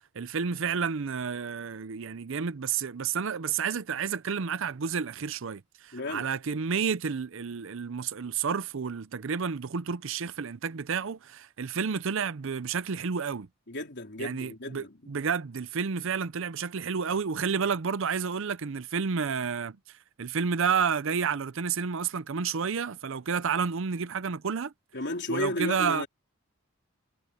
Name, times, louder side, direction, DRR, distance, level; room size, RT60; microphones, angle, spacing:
voice 1, 0.1-13.5 14.2-19.8 20.2-24.7 25.3-26.0, right 6 dB, 65° right, 0.6 m, -30 dB
voice 2, 5.9-6.3 13.7-15.1 24.9-26.1, left 2 dB, 60° left, 3.7 m, -33 dB
head